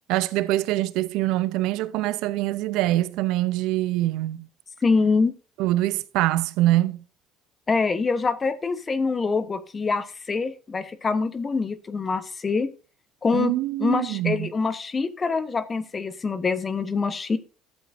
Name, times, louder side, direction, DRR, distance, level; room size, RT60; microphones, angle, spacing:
voice 1, 0.1-4.4 5.6-7.0 13.3-14.5, right 16 dB, 75° right, 0.6 m, -24 dB
voice 2, 4.8-5.3 7.7-12.7 13.2-13.5 13.8-17.4, left 4 dB, 30° left, 1.1 m, -25 dB
12.5 x 7.7 x 2.7 m
supercardioid pair, 85°, 0 cm